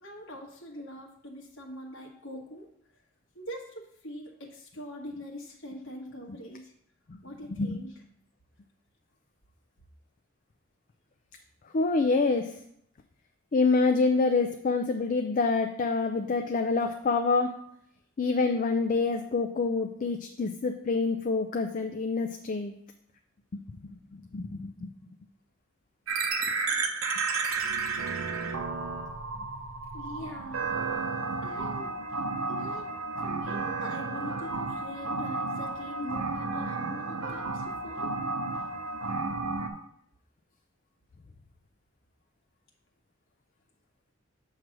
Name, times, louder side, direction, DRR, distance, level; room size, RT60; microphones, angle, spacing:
voice 1, 0.0-2.7 3.3-6.7 7.2-8.0 29.9-30.7 31.4-31.9 32.5-32.9 33.2-38.1, equal, 60° left, -2 dB, 1.4 m, -43 dB
voice 2, 11.7-12.5 13.5-17.5 18.2-22.7 23.5-24.9, left 3 dB, 40° left, 4 dB, 0.4 m, -27 dB
sound 1, 26.1-39.7, right 4 dB, 90° right, 0.8 m, -32 dB
7.5 x 3.2 x 5.9 m, 0.72 s
head